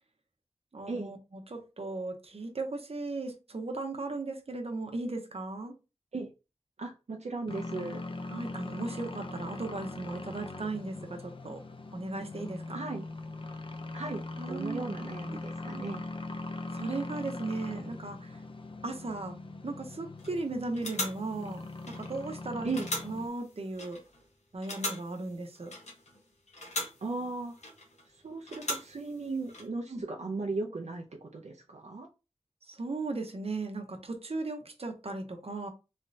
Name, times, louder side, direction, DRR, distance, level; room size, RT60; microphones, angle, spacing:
voice 1, 0.7-5.7 8.3-11.6 11.9-12.8 14.4-14.8 16.7-18.3 18.8-22.7 23.0-24.0 24.5-25.7 29.9-30.0 32.7-35.7, right 3 dB, 60° right, 0.8 m, -37 dB
voice 2, 6.8-8.0 12.7-13.0 13.9-14.2 14.5-16.0 22.6-22.9 27.0-27.5 28.2-32.1, right 3 dB, 85° right, 0.5 m, -36 dB
sound 1, 7.5-23.3, left 2 dB, 50° left, 0.6 m, -41 dB
sound 2, 20.2-20.4 20.7-22.3 22.7-24.2 24.6-26.2 26.5-28.0 28.5-29.7, left 1 dB, 85° left, 1.0 m, -40 dB
3.2 x 3.2 x 2.7 m
wide cardioid pair, 70°, 11 cm